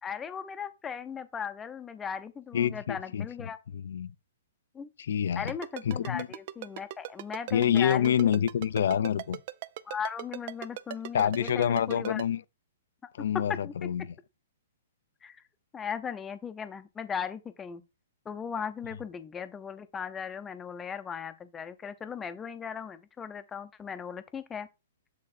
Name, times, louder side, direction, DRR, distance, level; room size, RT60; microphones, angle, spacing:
voice 1, 0.0-3.6 4.7-4.9 5.4-8.4 9.9-12.2 13.2-13.7 15.2-15.4 15.7-17.8 18.2-24.7, left 7 dB, 15° left, 0.7 m, -37 dB
voice 2, 2.5-3.3 3.7-4.1 5.0-5.5 5.8-6.3 7.5-9.4 11.1-12.4 13.1-14.1, left 9 dB, 70° left, 0.5 m, -27 dB
Ringtone, 5.5-12.2, right 14 dB, 45° right, 0.5 m, -38 dB
8.7 x 3.8 x 4.3 m
hypercardioid pair, 155°, 0 cm